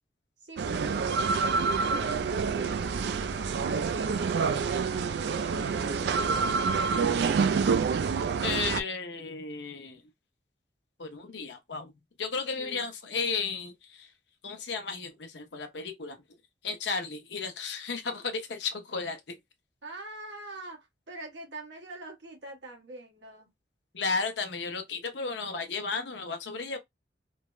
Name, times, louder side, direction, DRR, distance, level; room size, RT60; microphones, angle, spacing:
voice 1, 0.4-5.0 5.3-6.5 12.6-12.9 19.8-23.5, right 1 dB, 85° right, 1.2 m, -45 dB
sound 1, 0.6-8.8, right 5 dB, 70° right, 0.3 m, -27 dB
voice 2, 8.4-10.0 11.0-11.9 12.2-14.1 14.4-16.2 16.6-19.3 23.9-26.8, left 4 dB, 80° left, 0.7 m, -34 dB
3.2 x 2.1 x 2.4 m
head